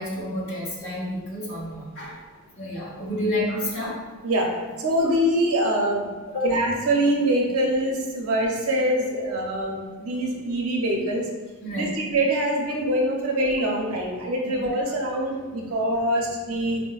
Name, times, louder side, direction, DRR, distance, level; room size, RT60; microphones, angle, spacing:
voice 1, 0.0-2.2 2.6-4.0 6.3-6.5 9.2-9.3 11.6-12.0 14.4-14.5, left 1 dB, 65° left, -5 dB, 1.0 m, -29 dB
voice 2, 4.8-6.1 6.4-11.2 11.7-16.8, right 1 dB, 75° right, -1 dB, 0.6 m, -24 dB
4.3 x 2.1 x 2.3 m, 1.3 s
head